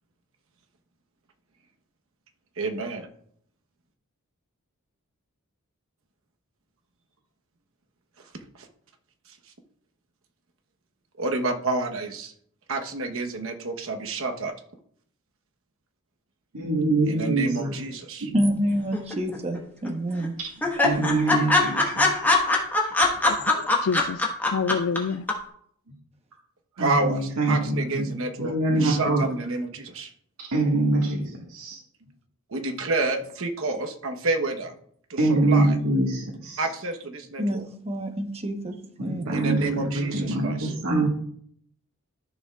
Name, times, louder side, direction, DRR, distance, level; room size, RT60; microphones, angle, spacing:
voice 1, 2.6-3.1 11.2-12.3 12.7-14.5 17.1-18.3 26.8-30.1 32.5-34.7 35.1-35.2 35.5-35.7 36.6-37.6 39.3-40.7, right 3 dB, 65° right, 1.1 m, -29 dB
voice 2, 16.5-17.8 18.2-18.4 20.4-22.2 23.3-23.4 26.8-28.1 28.4-29.3 30.4-31.8 35.2-36.7 39.0-41.1, right 2 dB, 85° right, 1.7 m, -25 dB
voice 3, 18.3-20.4 37.4-39.2 41.0-41.1, equal, 30° right, 1.0 m, -27 dB
sound 1, 18.9-19.6 19.9-20.0 20.2-20.3 20.6-25.0 25.3-25.4, left 3 dB, 10° left, 1.3 m, -21 dB
voice 4, 23.3-25.3, left 5 dB, 65° left, 0.3 m, -28 dB
13.5 x 6.7 x 2.4 m
head